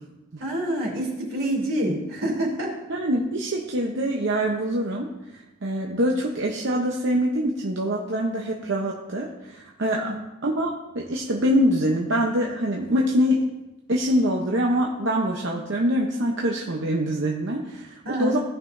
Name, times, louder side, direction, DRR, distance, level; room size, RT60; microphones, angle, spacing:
voice 1, 0.4-2.8 9.9-10.2 18.0-18.4, right 1 dB, 80° right, -2 dB, 3.0 m, -27 dB
voice 2, 2.9-10.1 10.4-13.4 13.9-18.4, equal, 55° right, -1 dB, 0.8 m, -24 dB
16.5 x 5.8 x 2.6 m, 1.0 s
head